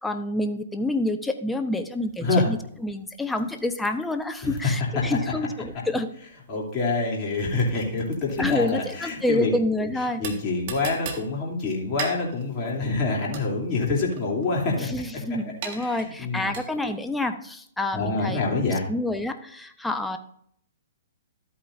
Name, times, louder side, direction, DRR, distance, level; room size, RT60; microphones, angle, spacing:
voice 1, 0.0-2.6 2.8-6.1 8.4-10.2 14.8-18.4 18.9-20.2, left 2 dB, 5° left, 7 dB, 0.8 m, -28 dB
sound 1, 2.0-17.1, right 6 dB, 45° right, 1.6 m, -41 dB
voice 2, 4.4-5.2 6.5-9.5 9.8-9.9 10.2-14.9 15.7-16.5 17.9-18.8, left 3 dB, 30° left, -3 dB, 2.9 m, -26 dB
12.5 x 8.6 x 2.6 m, 0.66 s
hypercardioid pair, 125°, 0 cm